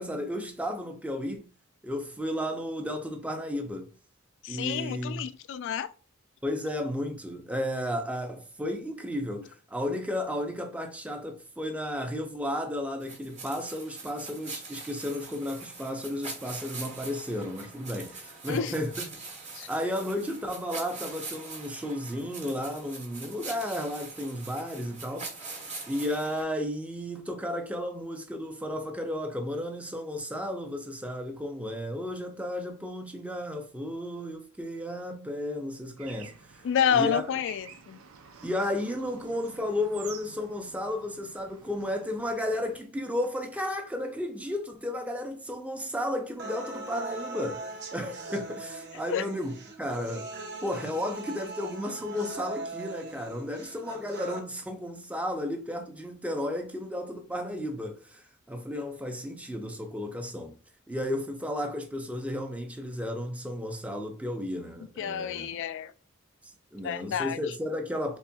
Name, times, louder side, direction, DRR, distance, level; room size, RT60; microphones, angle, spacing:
voice 1, 0.0-1.5 1.8-3.9 4.5-5.2 6.4-19.2 19.7-25.4 25.9-36.6 36.9-37.3 38.4-50.3 50.6-60.6 60.9-65.5 66.7-68.2, left 1 dB, 5° right, 0.6 m, -33 dB
voice 2, 4.4-5.9 18.5-18.7 19.5-19.7 36.6-38.0 49.1-49.2 65.0-65.9 66.8-67.4, left 8 dB, 60° left, 0.3 m, -29 dB
sound 1, 13.0-26.4, right 3 dB, 35° right, 1.4 m, -43 dB
Bird / Traffic noise roadway noise, 36.0-42.8, right 6 dB, 85° right, 0.5 m, -50 dB
sound 2, 46.4-54.4, right 3 dB, 55° right, 0.8 m, -40 dB
4.2 x 3.4 x 2.3 m
head